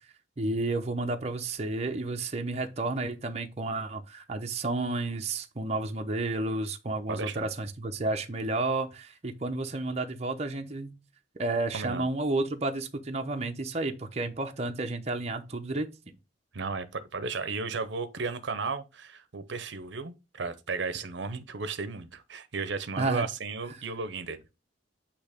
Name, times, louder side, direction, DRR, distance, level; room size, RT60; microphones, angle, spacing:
voice 1, 0.4-10.9 11.4-16.2 23.0-23.3, right 2 dB, 35° right, 0.8 m, -31 dB
voice 2, 7.1-7.5 11.7-12.1 16.5-24.4, right 4 dB, 70° right, 0.7 m, -34 dB
8.7 x 2.9 x 5.0 m
head